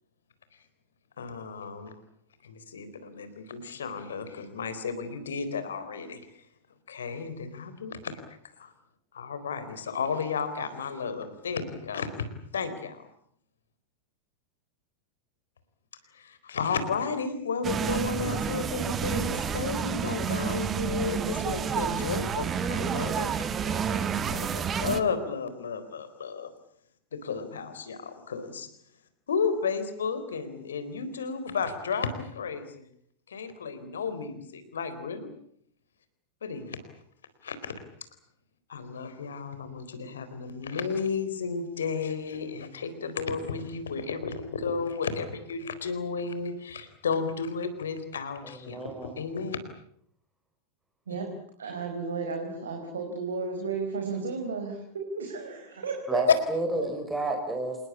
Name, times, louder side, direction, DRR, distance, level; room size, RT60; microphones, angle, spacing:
voice 1, 1.2-1.9 2.4-6.2 6.9-8.7 9.1-12.1 12.5-13.0 16.1-26.5 27.1-28.7 29.3-32.8 33.3-35.3 36.4-36.8 37.4-37.7 38.7-49.6, left 5 dB, 65° left, 11 dB, 4.1 m, -33 dB
sound 1, 17.6-25.0, right 7 dB, 25° right, 1.8 m, -29 dB
voice 2, 48.6-49.1 56.1-57.8, right 2 dB, 5° right, 3 dB, 4.5 m, -30 dB
voice 3, 51.6-56.2 56.8-56.9, right 4 dB, 70° right, 3 dB, 4.6 m, -33 dB
27.5 x 20.0 x 8.6 m, 0.67 s
figure-of-eight pair, 90°, 0 cm